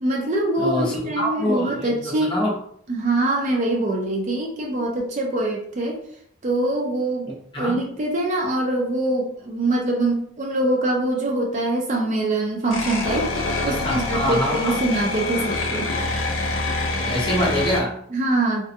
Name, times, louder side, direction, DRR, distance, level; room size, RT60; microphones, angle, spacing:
voice 1, 0.0-2.4 2.9-6.0 6.4-7.3 7.6-13.3 13.6-15.9 18.1-18.7, right 2 dB, 35° right, 0 dB, 0.4 m, -24 dB
voice 2, 0.6-2.5 7.2-7.8 13.7-14.8 17.0-18.0, equal, 25° left, -5 dB, 0.7 m, -25 dB
sound 1, 12.7-17.8, left 2 dB, 75° left, 0.5 m, -26 dB
2.4 x 2.2 x 2.6 m, 0.65 s
head